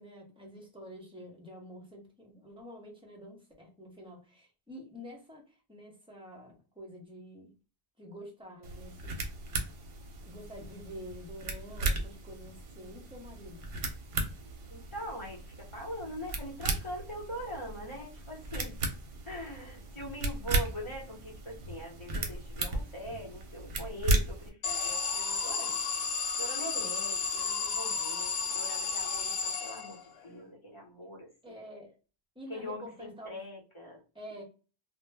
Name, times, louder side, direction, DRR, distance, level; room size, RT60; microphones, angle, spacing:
voice 1, 0.0-5.4 5.7-7.5 8.0-9.2 10.3-13.6 31.4-31.9 32.4-33.4 34.1-34.4, equal, 5° right, 0.6 m, -48 dB
sound 1, 8.6-24.5, right 2 dB, 60° right, 0.7 m, -36 dB
voice 2, 14.7-18.9 19.2-25.8 26.1-31.6 32.5-34.0, equal, 30° left, 0.8 m, -42 dB
Alarm, 24.6-30.2, left 5 dB, 75° left, 0.8 m, -32 dB
2.1 x 2.0 x 3.3 m
omnidirectional pair, 1.1 m